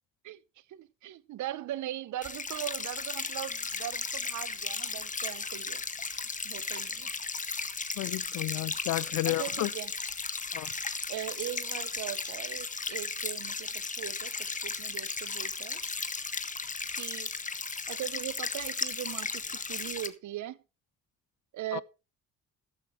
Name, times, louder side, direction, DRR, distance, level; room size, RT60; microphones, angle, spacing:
voice 1, 0.7-5.8 6.1-7.1 9.3-9.9 11.1-14.3 14.6-15.8 16.9-17.3 17.9-20.6 21.5-21.8, right 13 dB, 70° right, 0.9 m, -39 dB
sound 1, 2.2-20.1, left 4 dB, 25° left, 1.5 m, -35 dB
voice 2, 8.0-9.7 10.5-10.7 21.7-21.8, left 18 dB, 85° left, 0.5 m, -32 dB
13.5 x 11.0 x 3.2 m
cardioid pair, 90°, 30 cm